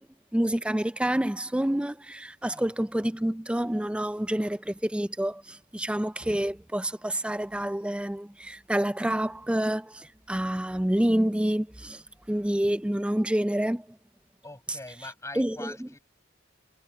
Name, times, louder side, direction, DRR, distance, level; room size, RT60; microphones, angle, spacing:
voice 1, 0.3-12.0 12.3-13.9 14.7-14.8 15.3-15.9, right 1 dB, 5° right, 0.4 m, -28 dB
voice 2, 14.4-16.0, left 2 dB, 15° left, 6.7 m, -42 dB
head